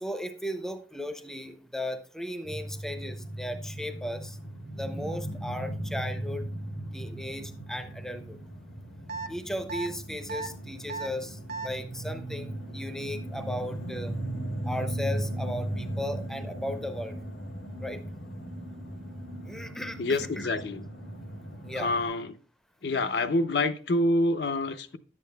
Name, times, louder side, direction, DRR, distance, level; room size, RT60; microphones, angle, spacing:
voice 1, 0.0-4.4 4.7-6.5 6.9-8.4 9.3-14.1 14.6-17.1 17.8-18.0 19.4-20.5 21.6-21.9, left 1 dB, 5° left, 0.5 m, -36 dB
sound 1, 2.4-22.1, right 1 dB, 90° left, 1.7 m, -37 dB
sound 2, 9.1-9.3 9.7-9.9 10.3-10.5 10.9-11.1 11.5-11.7, right 4 dB, 60° right, 1.2 m, -34 dB
voice 2, 20.0-20.9 21.7-22.3 22.8-25.0, left 2 dB, 65° left, 0.5 m, -27 dB
11.0 x 8.5 x 2.2 m
head